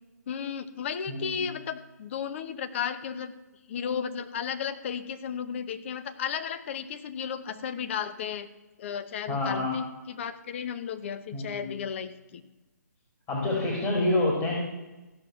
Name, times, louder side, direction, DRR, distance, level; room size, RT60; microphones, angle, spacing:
voice 1, 0.3-3.3 3.7-8.5 8.8-12.4, left 7 dB, 40° left, 11 dB, 0.9 m, -34 dB
voice 2, 1.1-1.4 9.3-9.8 11.3-11.7 13.3-14.5, left 2 dB, 20° left, -3 dB, 2.5 m, -27 dB
15.0 x 6.3 x 6.9 m, 1.1 s
figure-of-eight pair, 140°, 10 cm